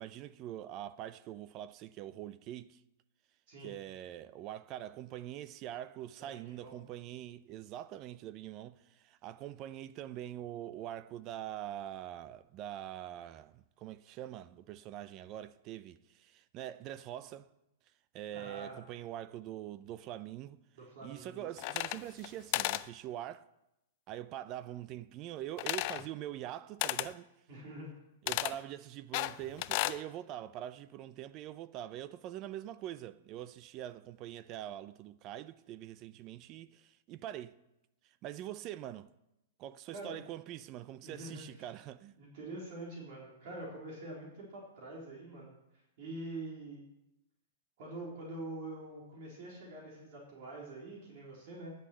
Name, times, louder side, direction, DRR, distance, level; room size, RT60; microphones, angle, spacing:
voice 1, 0.0-2.8 3.6-17.5 18.1-20.6 21.0-23.5 24.1-27.3 28.2-37.6 38.0-39.1 39.6-42.1, right 12 dB, 35° right, 0.5 m, -44 dB
voice 2, 6.5-6.8 18.3-18.8 20.8-21.5 27.5-28.0 39.9-40.2 41.0-41.7 42.2-45.5 46.0-46.8 47.8-51.7, right 2 dB, 55° right, 3.6 m, -45 dB
sound 1, 21.6-22.3 22.5-22.9 25.6-26.1 26.8-27.1 28.3-28.6 29.1-30.0, left 18 dB, 45° left, 0.4 m, -34 dB
9.9 x 6.4 x 7.7 m
hypercardioid pair, 145°, 0 cm